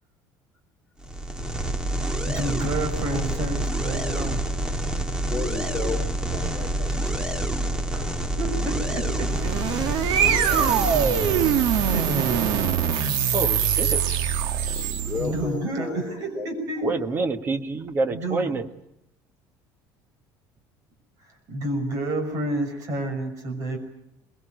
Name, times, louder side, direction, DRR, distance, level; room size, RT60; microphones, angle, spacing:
sound 1, 1.0-12.5, right 1 dB, 10° right, 1.6 m, -27 dB
voice 1, 2.2-4.5 6.5-6.7 7.7-10.1 11.2-11.4 11.9-12.5 15.2-16.9 17.5-17.6 18.1-18.6 21.5-23.8, right 1 dB, 45° right, 6 dB, 5.9 m, -30 dB
voice 2, 5.3-7.2 7.7-8.4 8.8-9.2 13.8-14.0 15.0-16.6, left 4 dB, 15° left, 0 dB, 3.1 m, -35 dB
sound 2, 9.2-15.5, right 8 dB, 65° right, 1.8 m, -23 dB
voice 3, 13.3-13.9 16.8-18.6, right 3 dB, 25° right, 9 dB, 1.5 m, -27 dB
23.5 x 21.0 x 9.2 m, 0.81 s
cardioid pair, 165°, 8 cm